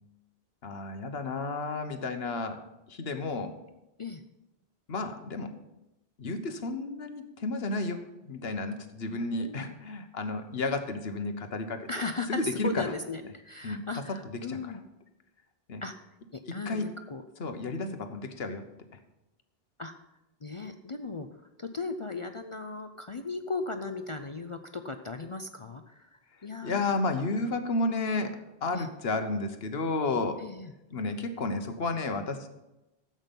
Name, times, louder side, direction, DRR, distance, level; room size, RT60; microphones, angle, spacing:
voice 1, 0.6-2.6 2.9-3.5 4.9-5.5 6.2-12.9 13.6-14.2 14.5-14.7 15.7-15.8 16.5-16.9 17.4-18.6 26.6-30.4 30.9-32.5, left 3 dB, 70° left, 7 dB, 1.3 m, -32 dB
voice 2, 9.4-9.8 11.9-14.8 15.8-15.9 16.3-17.2 17.8-18.0 19.8-19.9 20.4-21.3 21.6-27.3 28.7-28.9 30.4-30.7, left 3 dB, 40° left, 7 dB, 0.5 m, -37 dB
13.0 x 8.1 x 5.3 m, 0.95 s
omnidirectional pair, 1.1 m